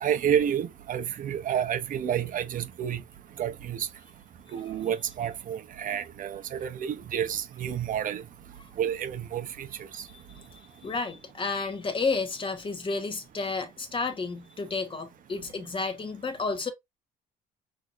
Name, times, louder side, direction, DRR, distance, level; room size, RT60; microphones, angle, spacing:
voice 1, 0.0-3.0 3.4-3.9 4.5-8.2 8.8-9.7 9.9-10.1, right 9 dB, 55° right, 1.0 m, -29 dB
voice 2, 10.1-16.7, left 4 dB, 30° left, 1.5 m, -32 dB
6.2 x 3.0 x 2.6 m
cardioid pair, 110°, 17 cm